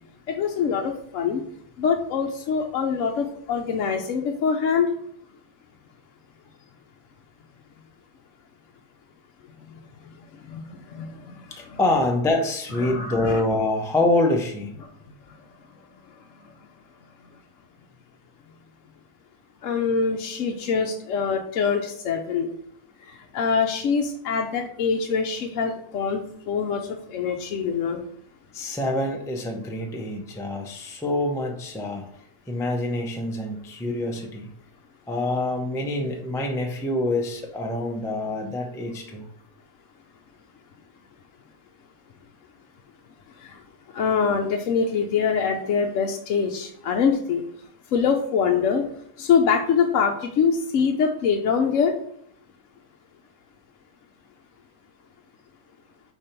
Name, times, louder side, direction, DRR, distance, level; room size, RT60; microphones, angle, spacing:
voice 1, 0.3-1.4 1.8-4.9 10.5-11.8 12.8-13.4 19.6-22.5 23.1-28.0 43.4-43.6 43.9-47.4 47.9-48.9 49.2-52.0, left 6 dB, 65° left, 2 dB, 0.9 m, -24 dB
voice 2, 11.5-14.7 28.5-32.1 32.5-34.5 35.1-39.3, left 2 dB, 5° left, 1 dB, 0.4 m, -26 dB
5.2 x 4.7 x 4.3 m, 0.67 s
omnidirectional pair, 1.5 m